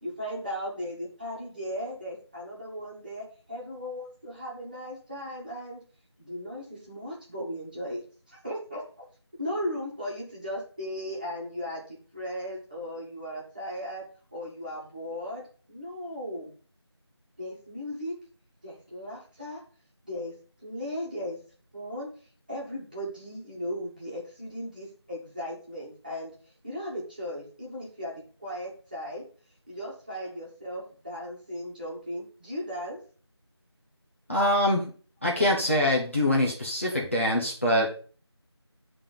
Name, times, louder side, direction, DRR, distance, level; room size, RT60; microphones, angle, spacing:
voice 1, 0.0-5.8 6.2-8.8 9.4-14.0 14.3-15.4 15.7-16.5 17.4-18.1 18.6-19.6 20.0-20.3 20.6-21.4 21.7-22.1 22.5-26.3 26.6-29.2 29.7-33.0, equal, 20° right, -6 dB, 1.9 m, -36 dB
voice 2, 34.3-34.9 35.2-37.9, left 1 dB, 30° left, -4 dB, 1.2 m, -24 dB
9.7 x 3.8 x 5.4 m, 0.40 s
figure-of-eight pair, 175°, 14 cm